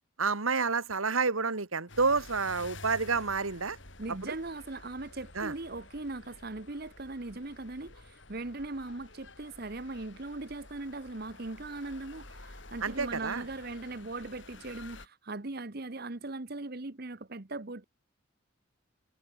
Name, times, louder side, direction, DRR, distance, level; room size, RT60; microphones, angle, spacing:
voice 1, 0.2-3.8 4.2-4.3 5.4-5.5 12.8-13.4, right 4 dB, 85° right, 2.1 m, -29 dB
sound 1, 1.9-15.1, left 2 dB, 60° left, 4.9 m, -51 dB
voice 2, 4.0-17.8, right 2 dB, 50° right, 1.1 m, -39 dB
head